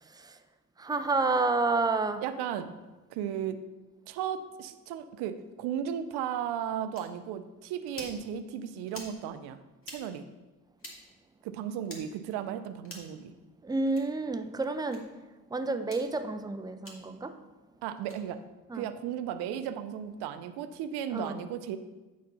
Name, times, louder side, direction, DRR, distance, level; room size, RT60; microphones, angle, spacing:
voice 1, 0.8-2.2 13.6-15.0 15.5-17.3 18.7-18.8 21.1-21.4, right 3 dB, 10° right, 8 dB, 0.5 m, -29 dB
voice 2, 2.2-2.7 3.1-3.6 4.1-9.6 9.9-10.3 11.4-13.3 17.8-18.4 18.7-21.8, right 9 dB, 90° right, 10 dB, 0.5 m, -35 dB
sound 1, 6.9-7.1 7.9-8.2 8.9-9.1 9.8-10.0 10.8-11.0 11.8-12.0 12.8-13.1 13.9-14.1 14.9-15.0 15.8-16.0 16.8-17.0 18.0-18.2, left 1 dB, 35° left, 2.0 m, -45 dB
9.3 x 4.2 x 4.1 m, 1.2 s
supercardioid pair, 60°, 38 cm